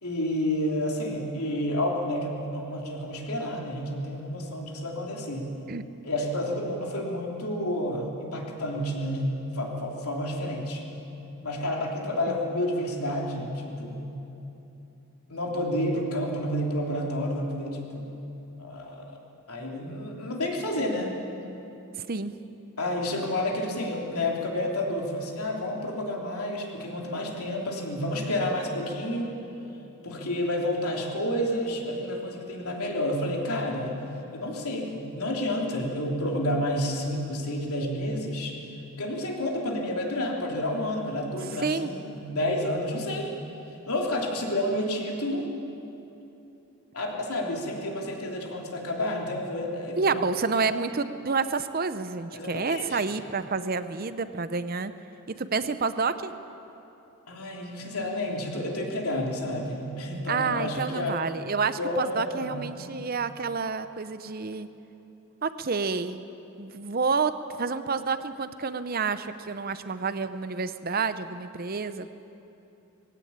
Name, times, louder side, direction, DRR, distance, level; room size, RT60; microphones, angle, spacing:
voice 1, 0.0-5.5 6.0-10.8 11.4-14.1 15.3-18.2 18.6-19.2 19.5-21.1 22.8-29.3 30.0-34.0 34.3-38.5 39.0-43.3 43.9-45.4 46.9-50.2 52.3-53.0 57.3-61.2 61.8-62.6, left 1 dB, 80° left, -1 dB, 3.4 m, -30 dB
voice 2, 50.0-54.9 55.4-56.3 60.3-64.7 65.4-66.2 66.6-72.1, right 4 dB, 40° right, 12 dB, 0.7 m, -29 dB
20.0 x 16.5 x 8.8 m, 3.0 s
head